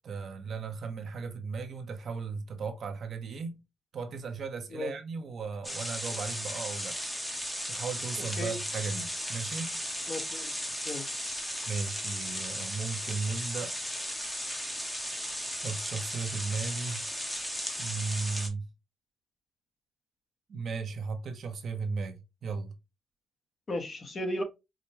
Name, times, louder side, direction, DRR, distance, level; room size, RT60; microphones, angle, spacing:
voice 1, 0.0-3.6 3.9-7.0 7.7-9.8 11.7-13.7 15.6-17.1 17.8-18.7 20.5-22.7, right 4 dB, 55° right, 0.8 m, -36 dB
sound 1, 5.6-18.5, equal, 5° left, 0.9 m, -36 dB
voice 2, 10.1-10.5 10.8-11.1 23.7-24.4, left 1 dB, 35° left, 1.0 m, -35 dB
4.8 x 2.2 x 2.9 m
cardioid pair, 90°, 0 cm